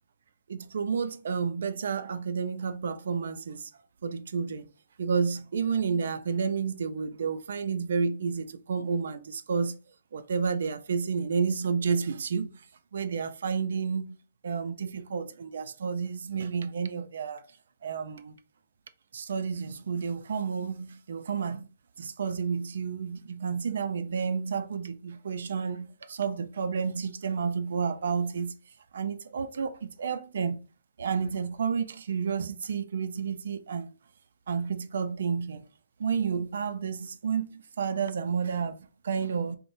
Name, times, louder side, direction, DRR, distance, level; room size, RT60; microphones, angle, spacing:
voice 1, 0.5-3.7 4.0-4.7 5.0-9.8 10.1-12.7 12.9-17.4 17.8-18.4 19.1-21.7 22.0-28.5 28.9-30.7 31.0-33.9 34.5-35.7 36.0-39.6, right 6 dB, 70° right, 0.3 m, -31 dB
2.5 x 2.0 x 2.9 m
hypercardioid pair, 150°, 0 cm